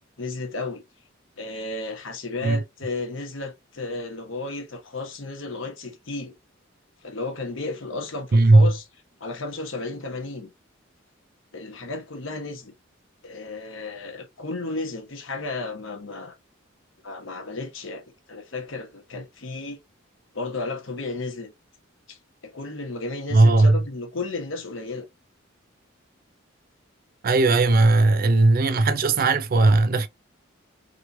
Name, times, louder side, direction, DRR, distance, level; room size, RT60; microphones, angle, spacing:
voice 1, 0.2-0.8 1.4-6.3 7.0-8.8 9.2-10.5 11.5-12.7 13.2-16.4 17.0-19.8 20.3-21.5 22.1-22.2 22.4-25.1, left 3 dB, 70° left, 1.1 m, -33 dB
voice 2, 8.3-8.7 23.3-23.8 27.2-30.1, right 2 dB, 45° right, 0.4 m, -17 dB
3.1 x 3.0 x 2.6 m
head